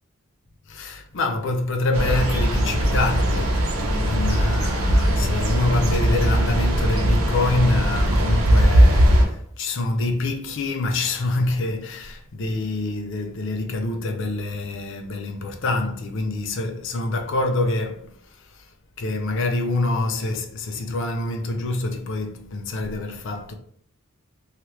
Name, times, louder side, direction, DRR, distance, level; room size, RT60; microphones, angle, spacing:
voice 1, 0.7-18.7 19.0-23.5, left 2 dB, 60° left, 0.5 m, -26 dB
sound 1, 1.9-9.2, equal, 85° right, 0.7 m, -19 dB
2.9 x 2.4 x 3.1 m
head